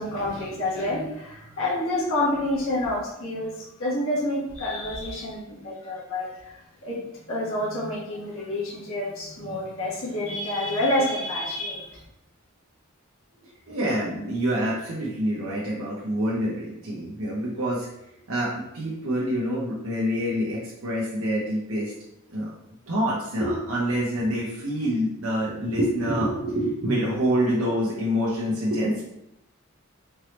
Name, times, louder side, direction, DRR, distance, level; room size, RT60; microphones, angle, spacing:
voice 1, 0.0-6.5 6.8-7.0 7.3-12.0, left 1 dB, 75° left, -6 dB, 1.4 m, -28 dB
voice 2, 13.7-17.9 18.3-21.9 22.3-22.5 22.9-29.0, equal, 90° right, -6 dB, 0.9 m, -26 dB
4.5 x 3.3 x 3.1 m, 0.84 s
head